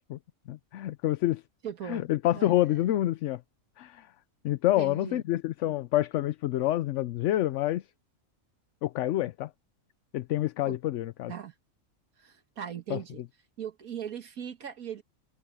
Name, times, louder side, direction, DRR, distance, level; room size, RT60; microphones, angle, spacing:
voice 1, 0.5-1.4 1.8-3.4 3.8-4.1 4.4-7.9 8.8-9.5 10.1-11.3 12.9-13.0, left 14 dB, 70° left, 0.8 m, -27 dB
voice 2, 1.6-2.1 2.3-2.5 4.8-5.2 10.7-10.8 11.3-11.5 12.2-13.2 13.6-15.0, right 8 dB, 90° right, 2.0 m, -39 dB
omnidirectional pair, 1.5 m